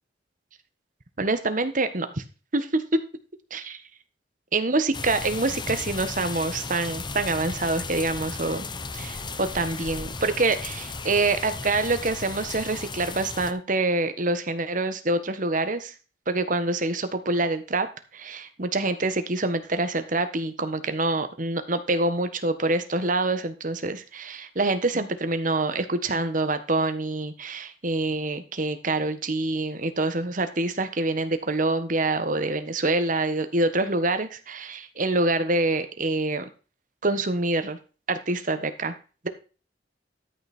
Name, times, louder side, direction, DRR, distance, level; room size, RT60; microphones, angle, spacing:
voice 1, 1.2-2.2 2.5-2.8 3.5-3.8 4.5-8.7 8.9-15.9 16.3-17.9 18.1-36.5 37.0-37.8 38.1-39.0, right 2 dB, 45° right, 9 dB, 1.4 m, -26 dB
sound 1, 4.9-13.5, left 4 dB, 25° left, 0.9 m, -35 dB
13.0 x 6.0 x 4.4 m, 0.34 s
head